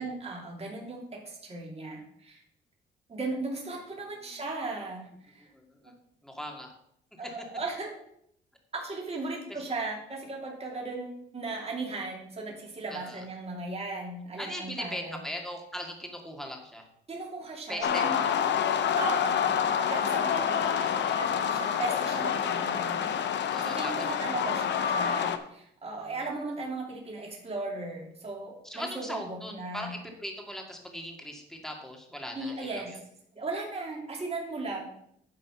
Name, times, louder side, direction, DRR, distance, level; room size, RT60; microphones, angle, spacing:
voice 1, 0.0-2.4 3.1-5.5 7.2-7.9 8.7-15.2 17.1-18.2 19.0-19.5 19.9-20.6 21.1-23.1 23.6-29.9 32.3-32.9 33.3-34.9, right 3 dB, 30° right, -1 dB, 2.8 m, -37 dB
voice 2, 5.5-5.9 6.2-6.7 7.2-7.4 9.5-9.6 12.9-13.2 14.4-16.9 17.7-18.4 20.5-21.2 23.5-24.1 28.6-33.0, equal, ahead, 2 dB, 2.2 m, -40 dB
sound 1, 17.8-25.4, left 8 dB, 65° left, 0.9 m, -27 dB
10.5 x 4.0 x 7.2 m, 0.72 s
cardioid pair, 90°, 20 cm